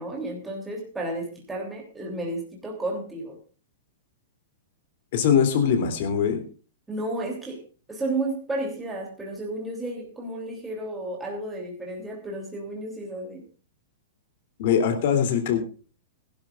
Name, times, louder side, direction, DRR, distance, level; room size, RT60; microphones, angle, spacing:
voice 1, 0.0-3.4 6.9-7.6 7.9-13.4, right 2 dB, 5° right, -1 dB, 3.0 m, -32 dB
voice 2, 5.1-6.4 14.6-15.6, left 7 dB, 45° left, 8 dB, 3.0 m, -22 dB
20.5 x 12.0 x 2.5 m, 0.37 s
supercardioid pair, 175°, 0 cm